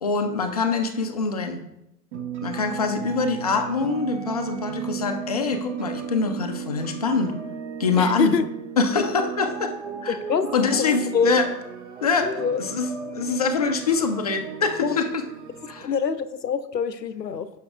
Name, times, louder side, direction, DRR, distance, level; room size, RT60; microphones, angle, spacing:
voice 1, 0.0-1.6 2.4-7.3 7.8-8.4 8.8-9.7 10.0-10.2 10.5-11.5 12.0-15.1 15.7-15.9, left 4 dB, 25° left, 6 dB, 0.3 m, -24 dB
sound 1, 2.1-15.8, right 8 dB, 45° right, 0.8 m, -35 dB
voice 2, 8.0-8.5 10.1-11.4 12.2-12.6 14.8-15.0 15.8-17.6, left 6 dB, 90° left, 14 dB, 0.6 m, -25 dB
9.3 x 6.3 x 2.4 m, 0.87 s
figure-of-eight pair, 110°, 49 cm